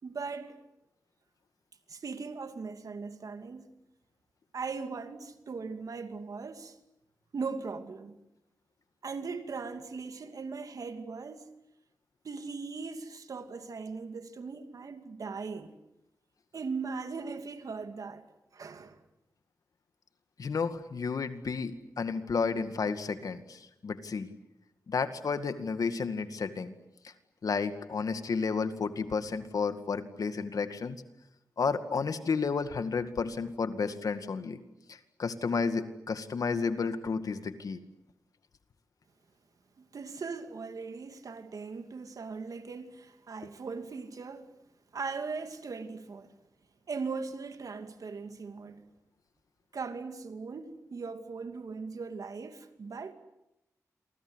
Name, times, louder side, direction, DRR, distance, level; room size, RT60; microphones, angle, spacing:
voice 1, 0.0-0.6 1.9-3.7 4.5-6.8 7.3-8.1 9.0-11.5 12.2-15.7 16.5-18.3 18.5-19.0 39.8-44.5 44.9-46.3 46.9-48.8 49.7-53.1, right 4 dB, 70° right, 2.6 m, -39 dB
voice 2, 20.4-24.3 24.9-26.7 27.0-27.1 27.4-31.0 31.6-34.6 34.9-37.8, left 5 dB, 70° left, 2.1 m, -32 dB
28.5 x 24.0 x 8.1 m
cardioid pair, 70°, 6 cm